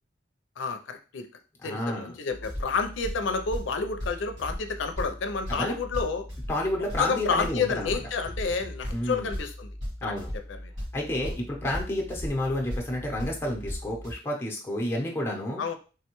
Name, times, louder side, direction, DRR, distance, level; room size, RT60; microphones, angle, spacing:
voice 1, 0.6-1.3 1.6-6.2 7.0-9.7 10.0-10.1 10.6-10.7 11.2-11.3 15.6-15.8, left 5 dB, 90° left, 6 dB, 0.4 m, -30 dB
voice 2, 1.6-2.1 5.5-5.8 6.5-8.0 8.9-9.3 10.0-10.3 10.9-15.6, left 1 dB, 15° left, -1 dB, 0.6 m, -30 dB
sound 1, 2.3-14.1, equal, 90° right, 1.8 m, -37 dB
3.4 x 2.2 x 2.9 m, 0.35 s
head